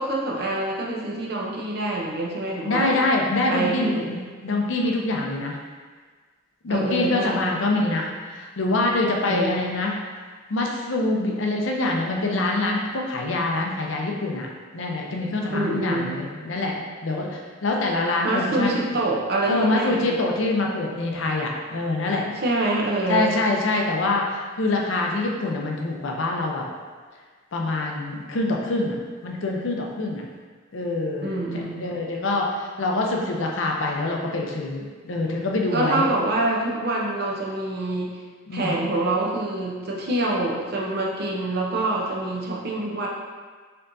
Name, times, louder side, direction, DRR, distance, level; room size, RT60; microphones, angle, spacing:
voice 1, 0.0-3.0 3.5-4.2 6.7-7.5 9.3-9.7 15.5-16.2 18.2-20.2 22.2-23.4 31.2-31.8 35.7-38.2 38.5-43.1, right 2 dB, 50° right, -2 dB, 0.7 m, -26 dB
voice 2, 2.6-5.6 6.6-9.9 10.5-14.5 14.7-16.7 17.0-18.8 19.5-22.3 23.1-26.6 27.5-29.0 29.2-30.2 30.7-36.1 38.5-38.8, left 2 dB, 70° left, 0 dB, 0.6 m, -25 dB
4.4 x 3.7 x 2.6 m, 1.5 s
head